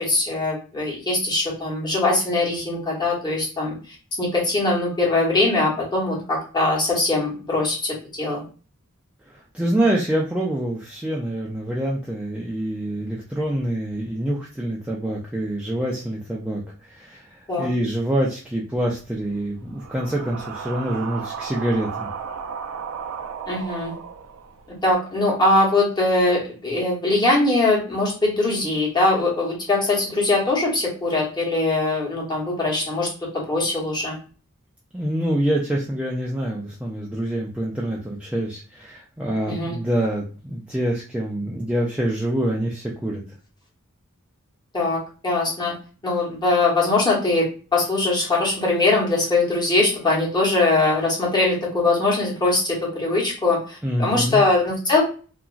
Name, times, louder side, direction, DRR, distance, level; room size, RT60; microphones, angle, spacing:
voice 1, 0.0-8.4 17.5-17.7 23.5-23.9 24.8-33.1 33.3-34.2 39.5-39.7 44.7-45.7 46.0-47.4 47.7-55.0, left 2 dB, 20° left, -4 dB, 1.0 m, -21 dB
voice 2, 9.3-22.1 34.9-43.2 53.8-54.4, right 1 dB, 5° right, -3 dB, 0.3 m, -26 dB
sound 1, 18.7-24.9, right 6 dB, 70° right, 0.4 m, -35 dB
2.9 x 2.4 x 2.4 m, 0.38 s
head